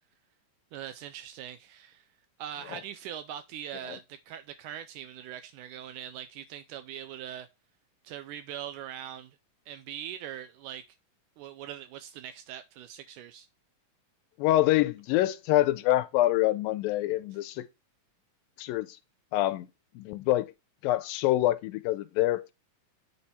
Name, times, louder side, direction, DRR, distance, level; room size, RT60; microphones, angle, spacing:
voice 1, 0.7-2.0 2.4-7.5 8.0-9.3 9.7-10.8 11.4-13.5 17.3-17.4, right 10 dB, 80° right, 1.9 m, -41 dB
voice 2, 14.4-17.6 18.6-18.9 19.3-19.7 20.0-20.5 20.8-22.5, left 15 dB, 90° left, 2.3 m, -26 dB
8.7 x 3.4 x 4.1 m
omnidirectional pair, 4.0 m